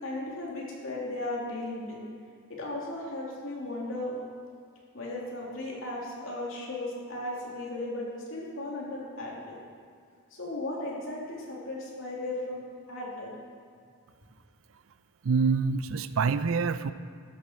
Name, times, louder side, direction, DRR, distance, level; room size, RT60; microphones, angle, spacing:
voice 1, 0.0-2.0 2.5-4.1 4.9-9.6 10.4-12.6 12.9-13.3, left 2 dB, 60° left, -4 dB, 3.0 m, -36 dB
voice 2, 15.2-16.9, right 5 dB, 65° right, 13 dB, 0.5 m, -26 dB
13.5 x 7.5 x 6.3 m, 2.3 s
head